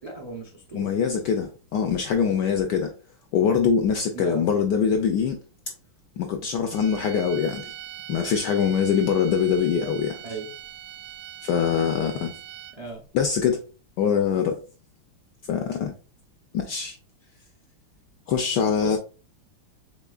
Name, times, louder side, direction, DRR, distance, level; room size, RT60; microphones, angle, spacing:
voice 1, 0.0-0.9 4.1-4.5 10.2-10.5 12.8-13.0 18.8-19.0, right 2 dB, 55° right, 0.4 m, -36 dB
voice 2, 0.7-2.9 3.3-5.4 6.2-7.7 8.1-10.2 11.4-12.4 13.1-13.6 14.0-14.6 15.5-15.9 16.5-17.0 18.3-19.0, left 7 dB, 80° left, 0.9 m, -23 dB
sound 1, 6.7-13.0, right 12 dB, 70° right, 1.2 m, -41 dB
5.9 x 3.6 x 2.4 m
omnidirectional pair, 2.3 m